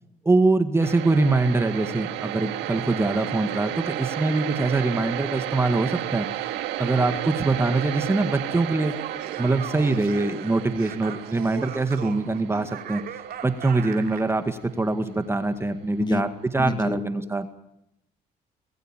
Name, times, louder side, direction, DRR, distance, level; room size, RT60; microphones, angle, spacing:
voice 1, 0.2-6.3 6.8-8.9 9.4-13.0 13.4-16.3 16.5-17.5, right 3 dB, 15° right, 9 dB, 2.0 m, -23 dB
sound 1, 0.8-14.6, right 13 dB, 90° right, 2.2 m, -33 dB
Laughter, 8.8-14.3, right 9 dB, 60° right, 3.0 m, -38 dB
voice 2, 16.6-17.2, left 3 dB, 25° left, 8 dB, 2.8 m, -28 dB
26.5 x 21.0 x 9.1 m, 0.81 s
cardioid pair, 110°, 17 cm